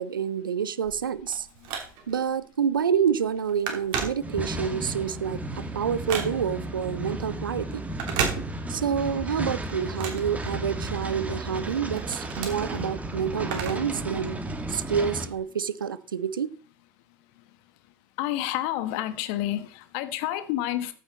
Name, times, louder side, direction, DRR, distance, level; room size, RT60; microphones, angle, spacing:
voice 1, 0.0-1.5 2.1-7.8 8.7-14.4 14.7-16.5, right 7 dB, 75° right, 0.7 m, -28 dB
Telephone, 0.8-2.3 2.8-3.0 3.2-4.7 5.1-6.7 7.8-9.0 9.3-11.0 11.5-14.0 14.3-14.4 15.3-15.4, right 6 dB, 50° right, 3.0 m, -34 dB
sound 1, 4.2-15.3, right 1 dB, 10° right, 1.9 m, -34 dB
voice 2, 18.2-20.9, left 14 dB, 55° left, 1.2 m, -29 dB
14.5 x 6.6 x 4.1 m
figure-of-eight pair, 75°, 11 cm